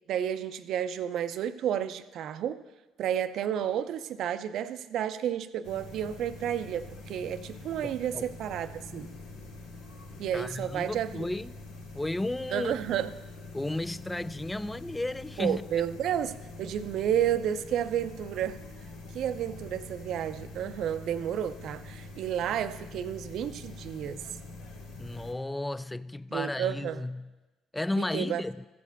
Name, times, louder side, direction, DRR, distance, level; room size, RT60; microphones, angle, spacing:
voice 1, 0.1-2.6 3.0-9.1 10.2-11.3 12.5-13.1 15.4-18.6 19.1-24.2 26.3-27.0 28.0-28.4, right 10 dB, 65° right, 0.5 m, -31 dB
sound 1, 5.6-25.3, left 2 dB, 85° left, 1.6 m, -45 dB
voice 2, 7.8-8.2 10.3-11.5 11.9-12.8 13.5-15.6 25.0-27.3 27.7-28.7, left 2 dB, 10° left, 0.3 m, -33 dB
14.5 x 5.1 x 6.7 m
hypercardioid pair, 60°, 0 cm